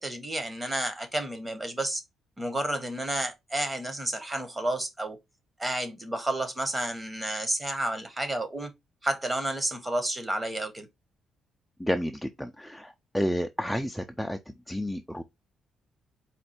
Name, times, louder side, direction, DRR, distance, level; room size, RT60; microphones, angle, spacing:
voice 1, 0.0-2.0 2.4-5.2 5.6-8.7 9.0-10.9, right 1 dB, 20° right, 1.1 m, -31 dB
voice 2, 11.8-14.4 14.7-15.2, equal, ahead, 0.4 m, -30 dB
4.3 x 2.4 x 4.2 m
cardioid pair, 90°, 0 cm